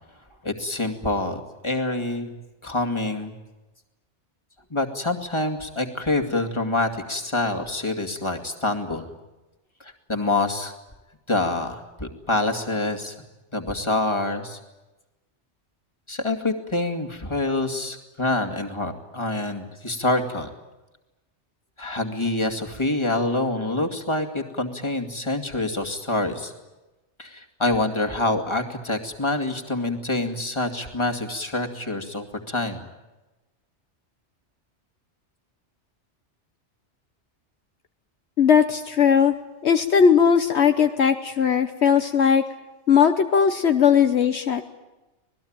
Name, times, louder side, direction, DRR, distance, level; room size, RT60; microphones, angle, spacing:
voice 1, 0.4-2.3 2.6-3.3 4.7-9.1 9.8-10.7 11.3-13.2 13.5-14.6 16.1-20.5 21.8-26.5 27.2-32.9, left 2 dB, 25° left, 3 dB, 2.4 m, -26 dB
voice 2, 38.4-39.3 39.6-42.4 42.9-44.6, left 7 dB, 70° left, 8 dB, 1.3 m, -18 dB
26.5 x 19.5 x 8.9 m, 1.1 s
omnidirectional pair, 1.2 m